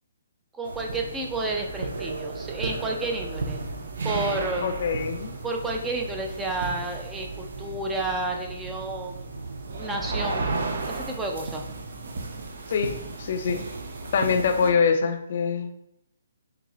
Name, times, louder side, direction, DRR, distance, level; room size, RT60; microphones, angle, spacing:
voice 1, 0.5-3.6 4.0-4.7 5.4-9.3 9.7-10.5 10.9-11.6, right 2 dB, 10° right, 1 dB, 0.4 m, -31 dB
sound 1, 0.6-14.7, right 3 dB, 70° right, 0.5 m, -34 dB
voice 2, 4.6-5.4 12.7-13.6 14.1-15.7, left 5 dB, 55° left, 7 dB, 0.4 m, -24 dB
3.8 x 2.8 x 3.0 m, 0.81 s
hypercardioid pair, 150°, 0 cm